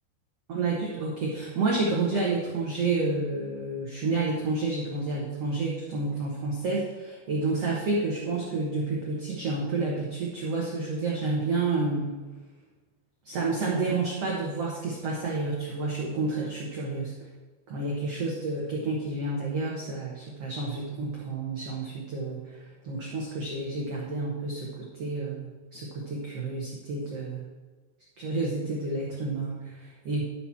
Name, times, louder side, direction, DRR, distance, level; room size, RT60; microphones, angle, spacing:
voice 1, 0.5-12.2 13.2-17.1 17.7-22.6 22.8-27.4 28.2-30.2, right 3 dB, 85° right, -4 dB, 1.3 m, -30 dB
11.5 x 4.3 x 5.8 m, 1.3 s
omnidirectional pair, 4.8 m